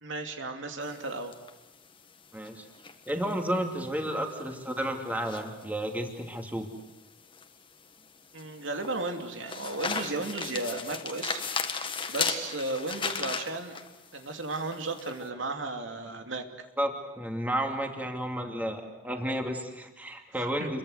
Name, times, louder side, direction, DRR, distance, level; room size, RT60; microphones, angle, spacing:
voice 1, 0.0-1.3 8.3-11.4 11.8-13.8 14.1-16.5 20.4-20.7, right 2 dB, 80° right, 5 dB, 2.8 m, -34 dB
sound 1, 0.8-15.2, left 5 dB, 25° left, 1.8 m, -37 dB
voice 2, 2.3-2.6 3.1-6.7 16.8-20.8, equal, 10° right, 3 dB, 2.6 m, -32 dB
29.0 x 23.0 x 8.1 m, 0.99 s
head